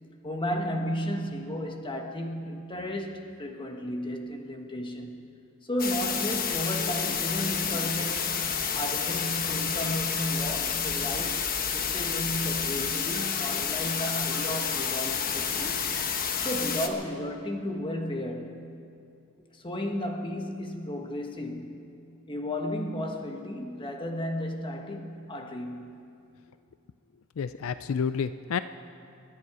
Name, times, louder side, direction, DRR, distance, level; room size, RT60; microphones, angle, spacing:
voice 1, 0.2-5.3 5.6-8.3 8.7-16.0 16.4-18.6 19.5-21.9 22.3-25.9, equal, 25° left, 3 dB, 1.4 m, -33 dB
sound 1, 5.8-16.9, left 7 dB, 45° left, 1.1 m, -29 dB
voice 2, 27.4-28.6, left 6 dB, 75° left, 12 dB, 0.4 m, -29 dB
27.5 x 10.5 x 4.9 m, 2.6 s
head